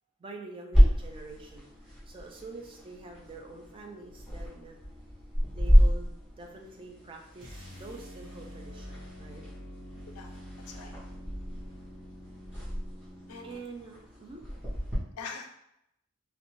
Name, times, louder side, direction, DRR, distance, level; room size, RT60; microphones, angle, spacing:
voice 1, 0.2-1.7 2.1-4.8 5.5-9.4 13.4-14.4, right 3 dB, 25° right, 1 dB, 0.4 m, -46 dB
sound 1, 0.7-15.0, equal, 5° right, 0.9 m, -29 dB
sound 2, 7.4-13.6, equal, 85° right, 0.9 m, -46 dB
voice 2, 10.1-10.9 13.3-13.6 15.2-15.6, left 5 dB, 80° left, 5 dB, 0.4 m, -43 dB
2.6 x 2.1 x 2.9 m, 0.79 s
head